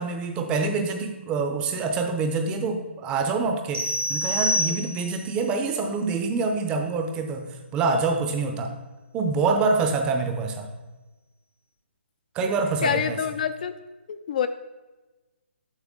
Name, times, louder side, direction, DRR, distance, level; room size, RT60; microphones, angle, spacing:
voice 1, 0.0-8.7 9.1-10.7 12.3-13.2, right 4 dB, 15° right, 5 dB, 0.5 m, -26 dB
sound 1, 3.7-5.3, left 1 dB, 90° right, 2.1 m, -26 dB
voice 2, 12.8-13.7 14.1-14.5, left 8 dB, 40° left, 10 dB, 0.3 m, -26 dB
7.2 x 5.9 x 3.8 m, 1.2 s
hypercardioid pair, 155°, 7 cm